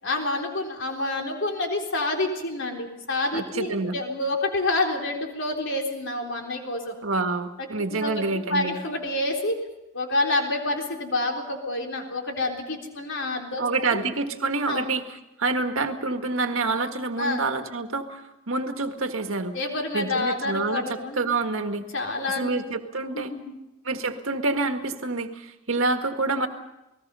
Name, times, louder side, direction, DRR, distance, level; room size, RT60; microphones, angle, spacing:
voice 1, 0.0-7.0 7.6-9.6 9.9-14.0 14.7-14.9 17.2-17.4 19.5-21.3 21.9-22.6 23.1-23.6, left 2 dB, 65° left, 2 dB, 3.8 m, -28 dB
voice 2, 3.3-4.0 7.0-8.8 13.6-18.2 18.5-19.5 19.9-21.8 22.4-23.3 23.8-26.5, right 3 dB, 80° right, 6 dB, 1.7 m, -27 dB
29.5 x 19.5 x 5.5 m, 0.95 s
head